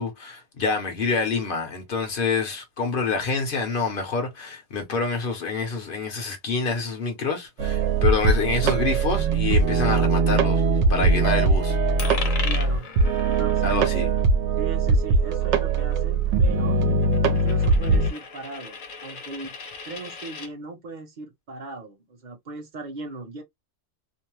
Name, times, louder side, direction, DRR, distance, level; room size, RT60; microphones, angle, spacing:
voice 1, 0.0-11.8 13.6-14.1, left 4 dB, 50° left, 0.9 m, -27 dB
sound 1, 7.6-18.1, right 4 dB, 70° right, 0.9 m, -21 dB
Coin (dropping), 12.0-20.5, left 5 dB, 90° left, 1.1 m, -38 dB
voice 2, 12.4-12.9 13.3-13.9 14.6-16.8 17.2-19.5 19.9-23.4, right 3 dB, 40° right, 0.9 m, -38 dB
2.6 x 2.1 x 2.9 m
omnidirectional pair, 1.3 m